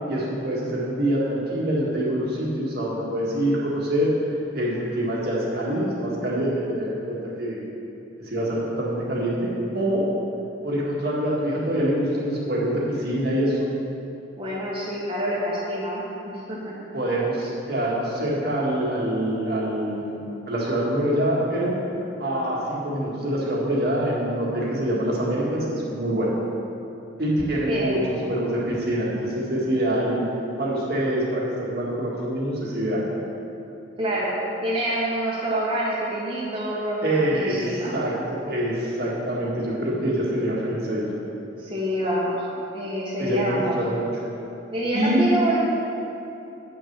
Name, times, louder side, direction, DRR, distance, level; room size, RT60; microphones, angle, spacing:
voice 1, 0.1-4.1 4.5-7.6 8.2-10.1 10.6-13.6 16.9-21.7 22.2-26.3 27.2-28.0 28.3-30.2 30.6-33.0 37.0-37.6 37.9-41.1 43.2-44.1 44.9-45.2, right 1 dB, 55° right, -5 dB, 1.8 m, -25 dB
voice 2, 14.4-16.7 27.7-28.3 34.0-37.9 41.6-42.4 42.7-43.8 44.7-45.6, right 1 dB, 25° right, -8 dB, 1.5 m, -27 dB
8.8 x 6.2 x 6.0 m, 2.8 s
head